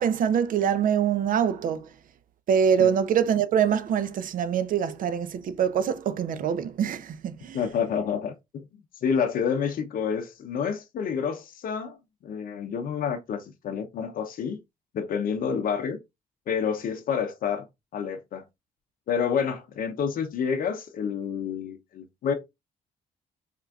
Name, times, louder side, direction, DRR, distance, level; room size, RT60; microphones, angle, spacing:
voice 1, 0.0-1.9 2.5-7.6, right 8 dB, 60° right, 0.5 m, -24 dB
voice 2, 7.5-8.6 9.0-12.0 12.2-14.6 14.9-16.0 16.5-17.7 17.9-18.4 19.1-22.3, left 7 dB, 65° left, 0.7 m, -28 dB
4.3 x 2.4 x 2.3 m
supercardioid pair, 60°, 16 cm